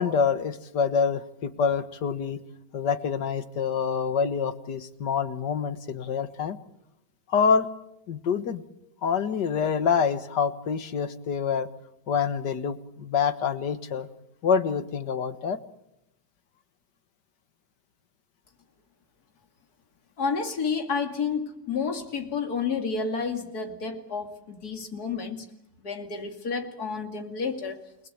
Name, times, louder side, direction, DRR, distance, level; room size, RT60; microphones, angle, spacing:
voice 1, 0.0-2.4 2.7-6.6 7.3-7.7 8.1-8.6 9.0-11.7 12.1-14.1 14.4-15.6, left 6 dB, 85° left, 11 dB, 2.1 m, -26 dB
voice 2, 20.2-25.4 25.8-27.8, left 5 dB, 65° left, 6 dB, 3.0 m, -30 dB
29.0 x 20.0 x 8.8 m, 0.83 s
omnidirectional pair, 1.8 m